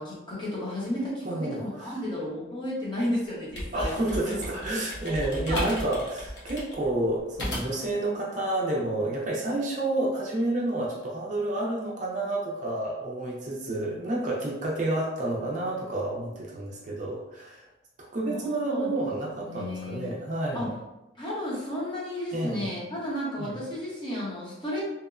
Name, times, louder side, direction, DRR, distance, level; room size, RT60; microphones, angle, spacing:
voice 1, 0.0-4.4 5.5-5.8 18.2-19.1 19.3-20.1 20.5-20.7 21.2-24.8, left 1 dB, 25° left, -7 dB, 0.8 m, -33 dB
voice 2, 1.2-1.9 3.7-17.6 18.0-20.8 22.3-22.7 23.4-23.6, right 2 dB, 40° right, -3 dB, 0.4 m, -30 dB
sound 1, 3.3-7.9, equal, 70° left, 0.8 m, -35 dB
2.9 x 2.0 x 2.3 m, 0.96 s
head